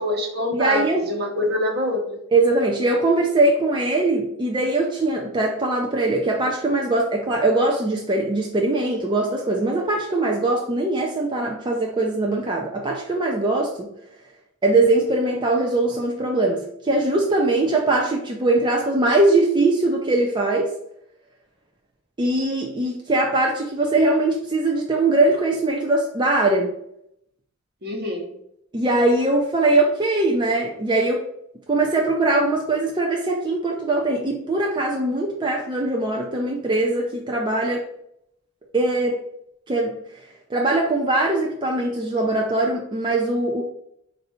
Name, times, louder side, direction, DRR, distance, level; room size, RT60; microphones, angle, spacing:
voice 1, 0.0-2.2 27.8-28.3, left 1 dB, 55° right, 1 dB, 1.1 m, -25 dB
voice 2, 0.5-1.1 2.3-13.9 14.6-20.7 22.2-26.7 28.7-31.2 31.7-37.9 38.7-39.2 39.7-40.0 40.5-43.6, right 2 dB, 25° right, 0 dB, 0.5 m, -21 dB
4.5 x 2.6 x 4.2 m, 0.76 s
head